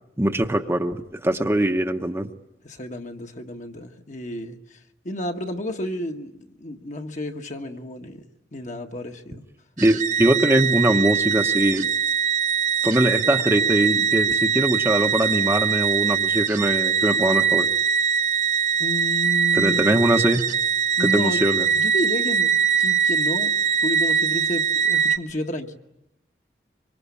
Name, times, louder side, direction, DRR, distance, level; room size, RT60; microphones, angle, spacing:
voice 1, 0.2-2.3 9.8-11.9 12.8-17.7 19.5-20.4 21.0-21.7, right 1 dB, 15° right, 1.0 m, -22 dB
voice 2, 2.6-8.2 8.5-9.4 18.8-19.9 21.0-23.5 23.8-25.8, left 1 dB, 45° left, 1.5 m, -31 dB
sound 1, 9.8-25.2, right 7 dB, 45° right, 1.0 m, -22 dB
25.0 x 24.5 x 8.4 m
head